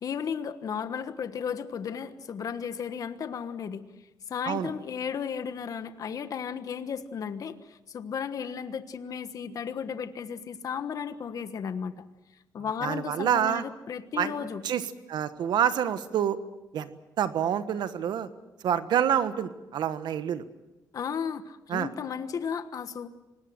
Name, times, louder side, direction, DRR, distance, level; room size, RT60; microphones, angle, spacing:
voice 1, 0.0-3.8 4.3-12.0 12.5-14.6 20.9-23.1, left 7 dB, 55° left, 11 dB, 1.3 m, -34 dB
voice 2, 12.8-13.6 14.2-14.8 15.1-16.4 16.7-18.3 18.6-20.4 21.7-21.9, right 9 dB, 75° right, 12 dB, 1.3 m, -27 dB
25.5 x 20.0 x 7.8 m, 1.0 s
cardioid pair, 135°, 7 cm